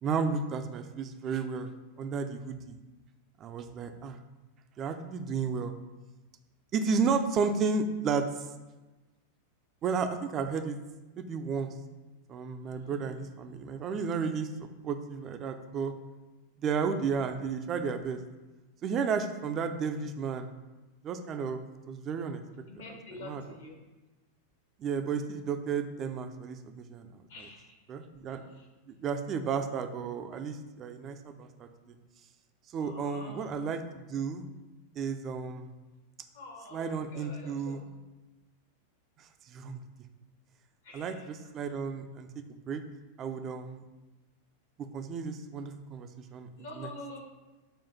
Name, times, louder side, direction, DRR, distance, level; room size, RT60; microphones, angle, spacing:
voice 1, 0.0-1.7 2.0-2.8 3.4-4.2 4.8-5.8 6.7-8.5 9.8-10.8 11.2-11.7 12.3-15.9 16.6-18.2 18.8-20.5 21.0-22.4 22.9-23.6 24.8-27.5 27.9-28.4 28.9-32.0 32.7-34.4 35.0-35.7 36.7-37.8 39.2-39.8 40.9-42.8 43.2-43.8 44.8-46.9, right 5 dB, 30° right, 6 dB, 0.5 m, -33 dB
voice 2, 12.6-13.1 22.7-23.8 27.3-27.7 28.6-28.7 32.8-33.5 36.3-37.8 40.8-41.2 46.6-47.2, left 2 dB, 60° left, 1 dB, 1.3 m, -46 dB
7.1 x 2.5 x 5.5 m, 1.1 s
figure-of-eight pair, 90°, 0 cm